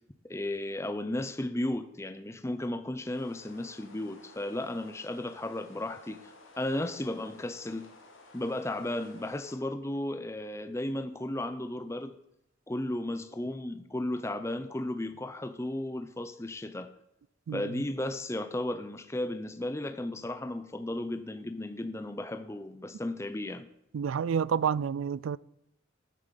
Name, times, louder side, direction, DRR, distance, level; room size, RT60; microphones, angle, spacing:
voice 1, 0.2-7.9 8.3-12.2 12.7-16.9 17.5-23.7, left 1 dB, 15° left, 0.5 m, -34 dB
sound 1, 3.1-9.6, left 3 dB, 85° left, 2.3 m, -55 dB
voice 2, 23.9-25.4, right 7 dB, 80° right, 0.3 m, -29 dB
8.8 x 7.5 x 7.5 m
head